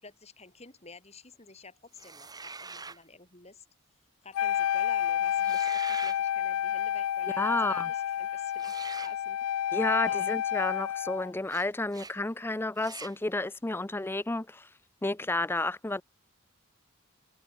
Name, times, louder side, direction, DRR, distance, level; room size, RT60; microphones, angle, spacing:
voice 1, 0.0-3.6 4.2-8.8 9.0-9.8 10.0-10.4, left 4 dB, 30° left, 4.7 m, -50 dB
sound 1, 2.0-3.0 5.3-6.2 8.6-9.2 11.5-11.7 11.9-12.2 12.8-13.2, right 4 dB, 20° right, 6.6 m, -43 dB
Wind instrument woodwind instrument, 4.3-11.3, left 10 dB, 80° left, 0.3 m, -30 dB
voice 2, 7.4-7.9 9.7-16.0, left 2 dB, 10° left, 0.4 m, -31 dB
head